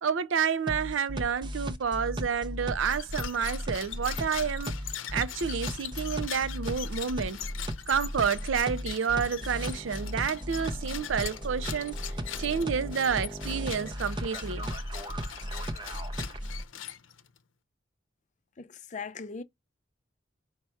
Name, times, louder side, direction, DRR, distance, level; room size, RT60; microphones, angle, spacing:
voice 1, 0.0-4.7 5.1-7.4 7.9-12.0 12.4-14.7, right 6 dB, 80° right, 0.5 m, -29 dB
sound 1, 0.7-16.6, equal, 25° right, 0.6 m, -36 dB
sound 2, 2.8-17.4, left 11 dB, 85° left, 0.6 m, -42 dB
voice 2, 18.6-19.4, left 5 dB, 40° left, 0.5 m, -39 dB
5.5 x 2.2 x 4.4 m
head